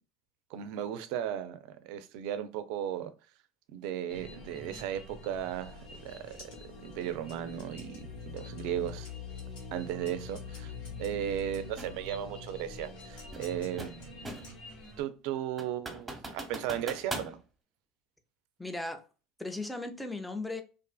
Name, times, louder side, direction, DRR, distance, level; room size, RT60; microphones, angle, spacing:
voice 1, 0.5-3.1 3.7-6.3 6.8-9.1 9.7-10.7 11.0-14.4 15.0-17.4, right 10 dB, 70° right, 0.4 m, -36 dB
sound 1, 4.1-15.0, left 3 dB, 60° left, 1.0 m, -45 dB
sound 2, 5.5-11.7 12.5-15.1, left 2 dB, 80° left, 1.4 m, -56 dB
sound 3, 11.8-12.0 13.3-14.6 15.0-15.1 15.6-17.3, right 2 dB, 15° right, 0.9 m, -40 dB
voice 2, 18.6-19.0 19.4-20.6, left 2 dB, 5° left, 0.5 m, -37 dB
2.5 x 2.5 x 2.3 m
hypercardioid pair, 90°, 0 cm